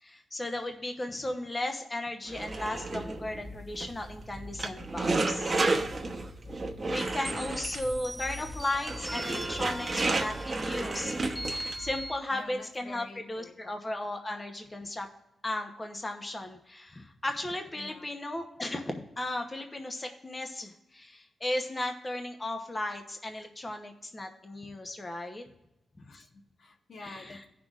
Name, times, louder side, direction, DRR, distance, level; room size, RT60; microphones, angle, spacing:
voice 1, 0.0-5.6 6.8-15.1 15.4-25.4 27.0-27.4, left 1 dB, 20° left, 4 dB, 0.9 m, -36 dB
sound 1, 2.3-12.0, right 2 dB, 35° right, 1.0 m, -32 dB
sound 2, 7.2-12.2, equal, ahead, 0.4 m, -40 dB
voice 2, 12.3-13.7 17.7-18.1 26.0-27.4, left 3 dB, 55° left, 4 dB, 1.2 m, -48 dB
17.0 x 6.0 x 2.4 m, 0.91 s
cardioid pair, 105°, 0 cm